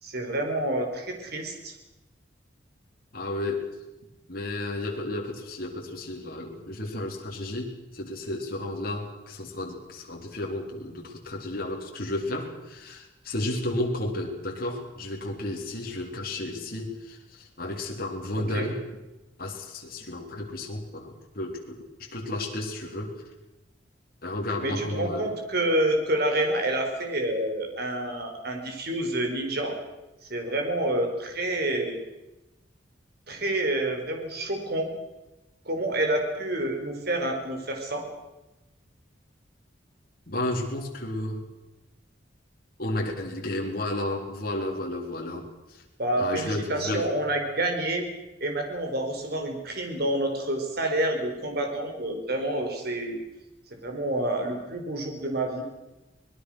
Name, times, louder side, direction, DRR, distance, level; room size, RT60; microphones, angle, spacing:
voice 1, 0.0-1.7 18.5-18.7 24.6-29.8 30.3-32.0 33.3-34.9 35.7-38.1 46.0-48.1 48.4-53.2 53.8-55.6, right 1 dB, 60° right, 3 dB, 4.4 m, -28 dB
voice 2, 3.1-3.7 4.3-18.8 19.4-23.1 24.2-25.3 40.3-41.5 42.8-45.5 46.2-47.1, left 1 dB, 50° left, 0 dB, 3.7 m, -32 dB
25.5 x 20.0 x 6.3 m, 1.0 s
head